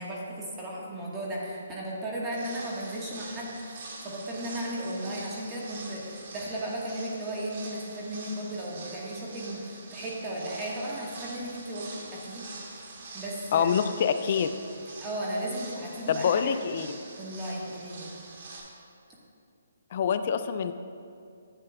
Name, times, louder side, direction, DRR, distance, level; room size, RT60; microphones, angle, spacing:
voice 1, 0.0-12.8 13.1-13.9 15.0-16.4 17.2-18.1, right 1 dB, 15° right, -6 dB, 1.4 m, -35 dB
sound 1, 2.3-18.6, right 3 dB, 50° right, 1.4 m, -45 dB
voice 2, 13.5-14.5 16.1-17.0 19.9-20.7, left 7 dB, 45° left, 10 dB, 0.4 m, -26 dB
11.0 x 8.7 x 2.3 m, 2.4 s
hypercardioid pair, 145°, 0 cm